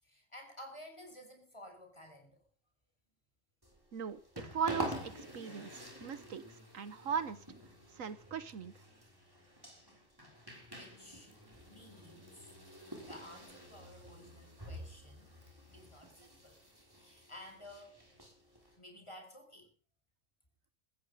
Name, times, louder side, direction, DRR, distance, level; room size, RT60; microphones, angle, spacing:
voice 1, 0.0-2.4 10.7-11.3 11.7-12.5 13.0-15.3 15.7-16.6 16.9-18.0 18.8-19.7, left 1 dB, 20° left, 4 dB, 5.1 m, -53 dB
sound 1, 3.6-18.8, equal, 15° right, 5.5 m, -48 dB
voice 2, 4.5-6.4 6.7-7.4 8.0-8.7, right 7 dB, 75° right, 14 dB, 1.4 m, -38 dB
16.0 x 14.5 x 5.5 m, 0.42 s
omnidirectional pair, 1.4 m